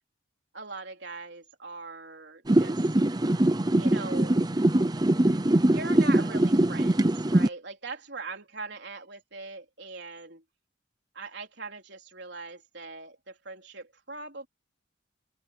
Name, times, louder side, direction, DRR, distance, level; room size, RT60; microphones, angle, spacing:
voice 1, 0.5-2.9 3.8-4.5 5.3-5.4 5.7-10.4 11.1-14.5, right 3 dB, 65° right, 4.1 m, -41 dB
sound 1, 2.5-7.5, right 1 dB, 20° right, 0.7 m, -23 dB
open air
head